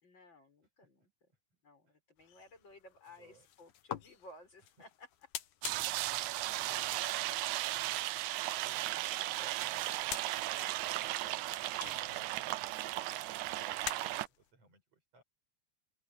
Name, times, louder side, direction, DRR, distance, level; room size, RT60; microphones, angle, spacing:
voice 1, 0.0-1.3 1.6-5.1 9.4-9.6, left 1 dB, 35° left, 7.0 m, -57 dB
sound 1, 2.2-14.5, left 12 dB, 90° left, 2.7 m, -49 dB
voice 2, 3.1-3.5 4.8-4.9 5.8-8.3 8.7-10.6 11.3-15.2, right 4 dB, 55° right, 7.2 m, -65 dB
sound 2, 5.6-14.3, right 16 dB, 80° right, 2.1 m, -36 dB
open air
omnidirectional pair, 3.4 m